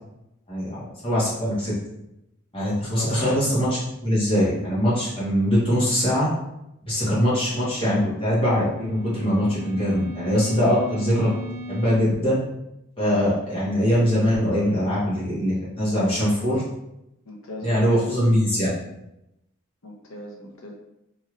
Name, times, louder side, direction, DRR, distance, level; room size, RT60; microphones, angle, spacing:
voice 1, 0.5-1.7 2.5-6.3 6.8-11.3 11.7-12.4 13.0-16.6 17.6-18.7, equal, 25° left, -9 dB, 1.2 m, -22 dB
voice 2, 3.0-3.5 17.3-18.0 19.8-20.7, left 1 dB, 75° left, -1 dB, 0.7 m, -39 dB
sound 1, 7.6-12.0, equal, 45° right, 0.4 m, -38 dB
3.0 x 2.7 x 2.5 m, 0.86 s
head